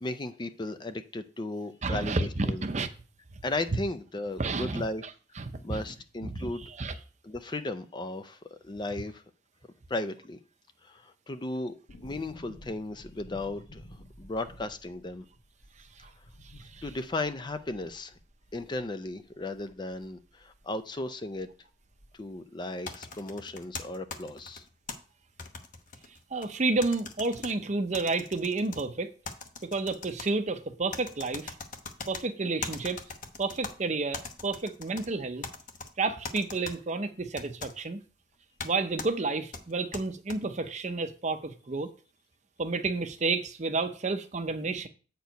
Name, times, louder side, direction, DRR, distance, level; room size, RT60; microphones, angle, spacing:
voice 1, 0.0-2.6 3.4-5.0 5.6-6.6 7.2-9.2 9.9-10.4 10.8-11.7 12.0-13.8 14.2-15.3 16.8-18.1 18.5-21.5 22.1-24.6, left 2 dB, 25° left, 0.5 m, -35 dB
voice 2, 1.8-2.9 4.4-5.1 5.4-5.8 6.2-7.0 15.8-16.1 16.4-16.9 26.1-29.1 29.6-31.5 32.1-33.0 33.4-35.5 36.0-38.0 38.6-41.9 42.6-44.9, right 3 dB, 40° right, 0.7 m, -31 dB
sound 1, 11.9-20.7 21.0-21.1 21.3-22.4 22.6-22.7, equal, 70° left, 1.8 m, -53 dB
sound 2, 22.9-25.0 25.4-26.5 26.8-27.5 27.9-28.8 29.2-30.3 30.9-32.2 32.6-33.7 34.1-35.1 35.4-35.9 36.2-36.8 37.4-37.7 38.6-38.7 39.0-39.1 39.5-40.4, left 4 dB, 45° left, 0.9 m, -40 dB
8.1 x 4.5 x 5.1 m
head